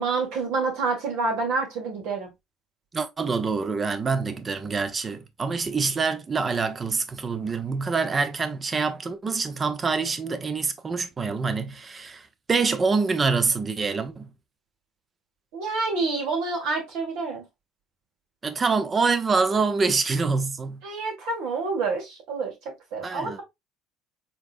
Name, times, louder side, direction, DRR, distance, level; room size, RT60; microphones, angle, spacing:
voice 1, 0.0-2.3 15.5-17.4 20.8-22.5 22.9-23.4, right 4 dB, 65° right, 1.9 m, -28 dB
voice 2, 2.9-14.3 18.4-20.8 23.0-23.4, right 4 dB, 30° right, 0.8 m, -26 dB
4.3 x 3.8 x 2.6 m
hypercardioid pair, 60°, 0 cm